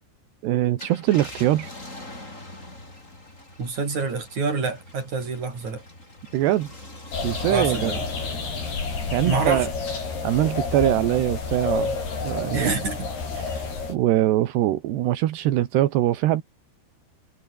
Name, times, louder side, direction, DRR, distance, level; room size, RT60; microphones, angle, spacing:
voice 1, 0.4-1.7 6.3-6.7 7.2-7.9 9.1-9.7 10.2-12.0 12.2-12.7 13.4-13.6 13.9-16.4, right 14 dB, 80° right, 3.5 m, -22 dB
Car, 0.6-11.5 12.0-12.1 14.1-14.3, left 2 dB, 15° left, 6.9 m, -43 dB
voice 2, 3.6-5.8 7.5-8.0 9.3-9.7 12.5-13.1, right 4 dB, 45° right, 7.1 m, -26 dB
sound 1, 7.1-14.0, left 4 dB, 70° left, 9.2 m, -29 dB
omnidirectional pair, 4.8 m